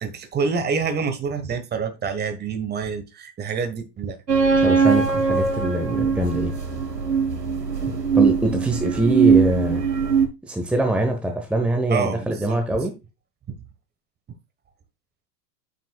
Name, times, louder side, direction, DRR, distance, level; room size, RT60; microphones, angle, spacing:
voice 1, 0.0-4.2 7.9-8.0 11.9-12.8, right 5 dB, 20° right, 1.5 m, -27 dB
sound 1, 4.3-10.3, right 5 dB, 85° right, 1.4 m, -20 dB
voice 2, 4.6-6.5 8.1-9.8 10.4-12.9, right 1 dB, ahead, 1.1 m, -23 dB
9.3 x 7.5 x 2.4 m
figure-of-eight pair, 95°, 47 cm